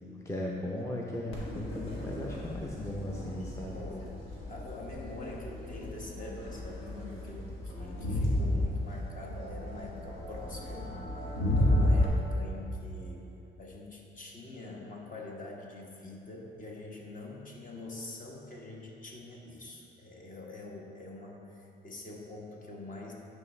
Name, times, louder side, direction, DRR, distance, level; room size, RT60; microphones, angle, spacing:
voice 1, 0.1-3.8 11.7-11.8, left 1 dB, 15° left, -2 dB, 0.6 m, -37 dB
Crowd, 1.3-12.1, left 1 dB, 85° left, 1.5 m, -32 dB
voice 2, 3.7-4.2 4.5-10.9 11.5-13.3 13.6-23.1, left 2 dB, 40° left, -1 dB, 1.2 m, -45 dB
9.6 x 4.7 x 3.3 m, 2.8 s
cardioid pair, 90°, 20 cm